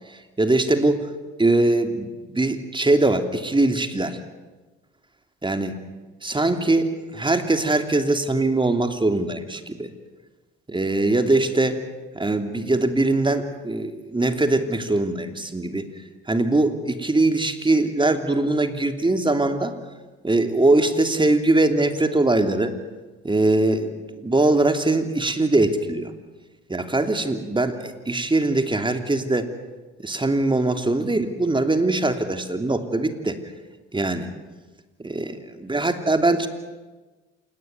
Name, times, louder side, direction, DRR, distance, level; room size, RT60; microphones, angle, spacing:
voice 1, 0.1-1.1 1.4-4.2 5.4-5.8 6.2-9.9 10.7-11.8 12.1-15.9 16.3-19.8 20.2-22.7 23.2-26.1 26.7-29.5 30.0-33.4 33.9-34.3 35.0-36.5, right 2 dB, 15° right, 7 dB, 3.0 m, -22 dB
28.0 x 18.5 x 9.5 m, 1.2 s
hypercardioid pair, 60°, 30 cm